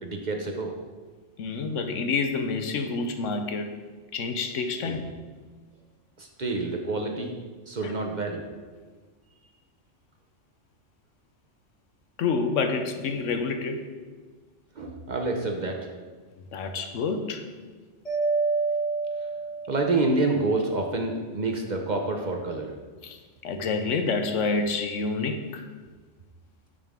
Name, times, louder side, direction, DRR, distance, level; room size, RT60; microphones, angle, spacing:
voice 1, 0.0-0.8 4.8-5.0 6.2-7.3 7.6-8.4 14.7-15.9 19.7-22.7, right 2 dB, 40° right, 2 dB, 0.8 m, -28 dB
voice 2, 1.4-3.8 4.1-5.1 7.8-7.9 12.2-13.8 16.5-17.4 23.0-23.2 23.4-25.6, left 4 dB, 80° left, 6 dB, 1.1 m, -28 dB
Mallet percussion, 18.1-20.1, right 4 dB, 30° left, 2.2 m, -27 dB
9.0 x 6.7 x 3.6 m, 1.4 s
omnidirectional pair, 1.3 m